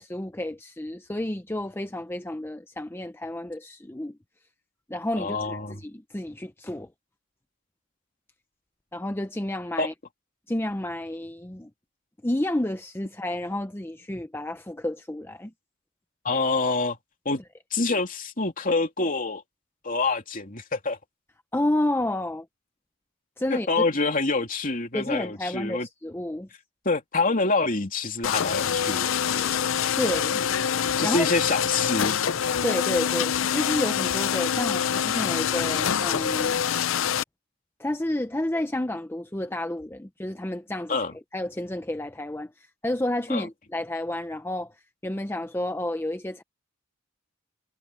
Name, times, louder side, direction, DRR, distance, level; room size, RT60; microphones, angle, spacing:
voice 1, 0.0-4.2 4.9-6.9 8.9-9.9 10.5-11.7 12.2-15.5 21.5-22.4 23.4-23.7 24.9-26.5 30.0-30.4 31.0-31.3 32.6-36.5 37.8-41.0 41.3-44.7 45.0-46.4, left 1 dB, 10° left, 0.6 m, -30 dB
voice 2, 5.2-5.8 9.8-9.9 16.2-17.0 17.2-17.4 17.7-19.4 19.8-21.0 23.5-25.9 26.8-29.8 31.0-32.2 40.9-41.1 43.3-43.5, left 3 dB, 40° left, 3.0 m, -26 dB
sound 1, 28.2-37.2, left 8 dB, 75° left, 0.5 m, -25 dB
head